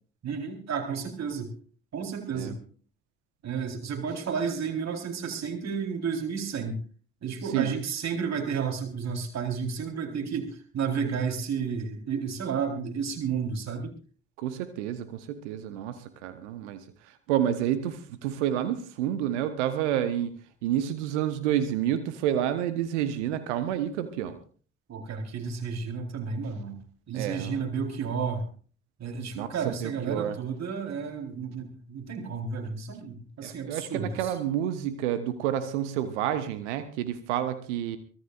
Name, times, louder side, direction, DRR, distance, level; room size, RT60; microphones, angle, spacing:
voice 1, 0.2-1.5 1.9-2.6 3.4-6.8 7.2-13.9 24.9-26.8 27.1-28.4 29.0-34.3, right 6 dB, 45° right, 2 dB, 4.3 m, -32 dB
voice 2, 14.4-20.3 20.6-24.4 27.1-27.7 29.3-30.4 33.4-38.0, right 10 dB, 70° right, 11 dB, 1.2 m, -29 dB
24.0 x 16.0 x 2.5 m, 0.43 s
figure-of-eight pair, 40°, 36 cm